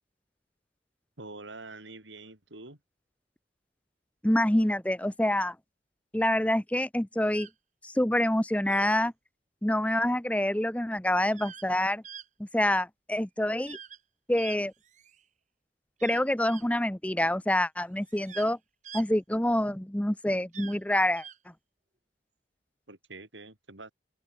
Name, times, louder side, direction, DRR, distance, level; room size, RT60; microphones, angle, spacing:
voice 1, 1.2-2.8 22.9-23.9, right 3 dB, 85° right, 3.9 m, -45 dB
voice 2, 4.2-5.5 6.1-7.5 7.8-9.1 9.6-12.0 12.4-13.8 14.3-14.7 16.0-18.6 18.9-21.2, left 1 dB, 5° left, 0.8 m, -26 dB
sound 1, 7.3-7.5 8.7-8.9 11.3-11.7 12.0-12.3 13.7-14.0 14.4-15.2 16.0-16.6 18.0-18.5 18.8-19.0 20.5-20.8 21.2-21.4, right 8 dB, 40° right, 1.6 m, -45 dB
head